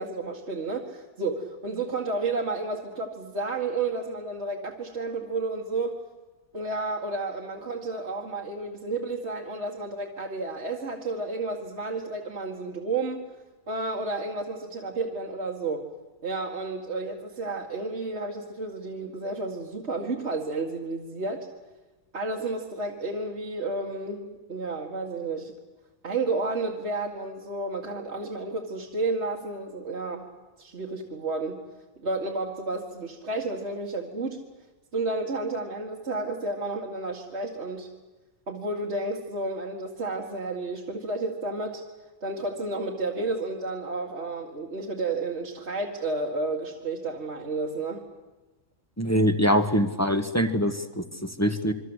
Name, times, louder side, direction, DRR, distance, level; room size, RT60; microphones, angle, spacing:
voice 1, 0.0-6.0 6.5-13.3 13.7-15.9 16.2-21.5 22.1-25.5 26.0-30.3 30.6-31.6 32.0-34.4 34.9-37.9 38.5-41.8 42.2-48.0, right 3 dB, 55° right, 0 dB, 2.3 m, -31 dB
voice 2, 49.0-51.7, equal, 10° left, 7 dB, 1.4 m, -24 dB
27.5 x 23.5 x 8.1 m, 1.2 s
omnidirectional pair, 1.4 m